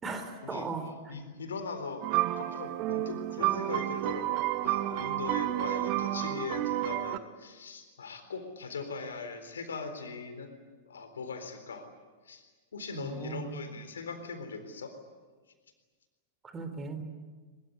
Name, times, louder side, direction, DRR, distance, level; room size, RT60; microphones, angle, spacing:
voice 1, 0.0-1.1 13.0-13.5 16.4-17.0, right 4 dB, 20° right, 8 dB, 3.8 m, -38 dB
voice 2, 1.1-2.1 2.4-10.5 10.9-11.9 12.2-12.4 12.7-14.9, left 4 dB, 70° left, 8 dB, 4.0 m, -40 dB
sound 1, 2.0-7.2, right 15 dB, 40° right, 1.1 m, -30 dB
22.5 x 22.0 x 9.7 m, 1.4 s
figure-of-eight pair, 95°, 0 cm